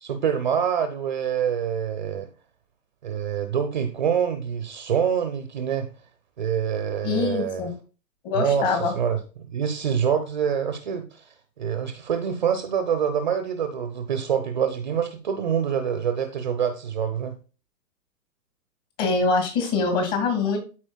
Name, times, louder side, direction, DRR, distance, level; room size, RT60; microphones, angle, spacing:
voice 1, 0.0-2.3 3.0-5.9 6.4-7.6 8.3-9.2 9.5-17.4, right 8 dB, 30° right, 0.5 m, -26 dB
voice 2, 7.0-7.7 8.2-8.9 19.0-20.6, left 4 dB, 35° left, 2.1 m, -24 dB
13.0 x 4.3 x 2.2 m
figure-of-eight pair, 125°, 49 cm